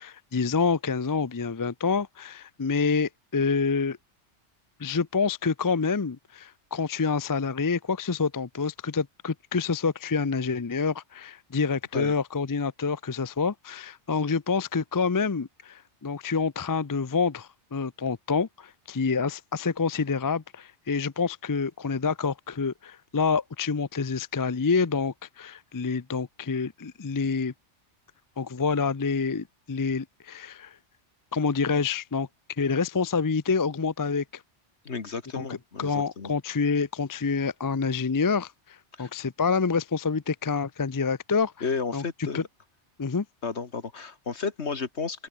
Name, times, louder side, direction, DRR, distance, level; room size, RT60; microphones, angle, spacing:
voice 1, 0.0-4.0 4.8-27.5 28.4-30.7 31.3-32.3 32.6-34.4 35.3-41.5 41.9-42.4 43.0-43.2, left 5 dB, 25° left, 0.4 m, -27 dB
voice 2, 34.9-36.3 39.0-39.1 41.6-42.5 43.4-45.3, left 5 dB, 70° left, 2.1 m, -32 dB
omnidirectional pair, 1.2 m